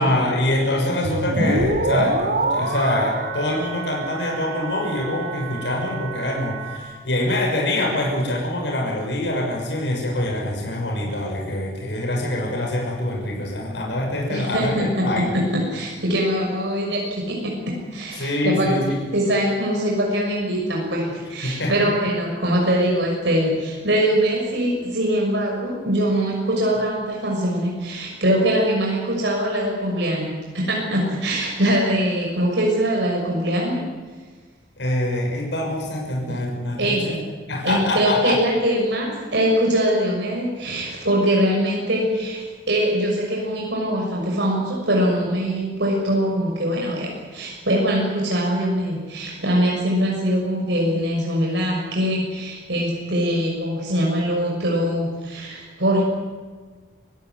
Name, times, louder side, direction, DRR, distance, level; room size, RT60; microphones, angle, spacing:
voice 1, 0.0-15.4 18.2-19.0 21.4-21.9 34.8-37.1 37.5-38.4, left 1 dB, 75° left, 0 dB, 6.7 m, -24 dB
sound 1, 1.0-6.8, right 2 dB, 55° right, 3.3 m, -26 dB
voice 2, 14.3-18.8 19.1-33.8 36.3-36.4 36.8-37.2 37.6-56.0, equal, 80° right, -2 dB, 6.4 m, -22 dB
26.5 x 16.5 x 9.7 m, 1.4 s
head